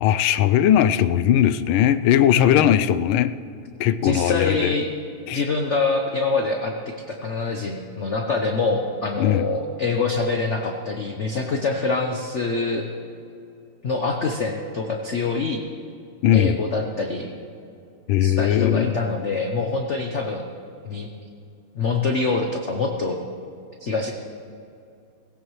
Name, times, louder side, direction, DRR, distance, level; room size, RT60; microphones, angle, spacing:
voice 1, 0.0-3.3 3.8-4.7 5.3-5.4 9.2-9.5 16.2-16.6 18.1-18.9, left 10 dB, 80° left, 14 dB, 1.4 m, -19 dB
voice 2, 4.0-4.9 5.3-12.8 13.8-15.6 16.3-17.3 18.2-20.5 20.8-21.1 21.7-23.2 23.8-24.1, left 3 dB, 55° left, 3 dB, 0.8 m, -25 dB
17.5 x 16.5 x 3.1 m, 2.6 s
omnidirectional pair, 2.3 m